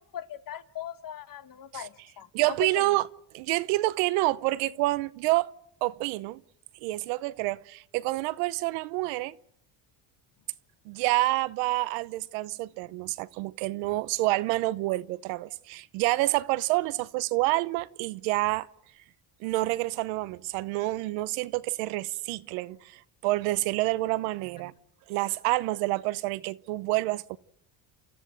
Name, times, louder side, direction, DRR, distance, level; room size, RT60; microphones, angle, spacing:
voice 1, 0.0-2.8, left 10 dB, 45° left, 1.4 m, -40 dB
voice 2, 2.3-3.1 3.3-5.5 5.8-6.4 6.8-9.3 10.9-18.7 19.4-24.7 25.1-27.4, right 19 dB, 90° right, 0.9 m, -28 dB
29.5 x 14.0 x 7.9 m
supercardioid pair, 90°, 45 cm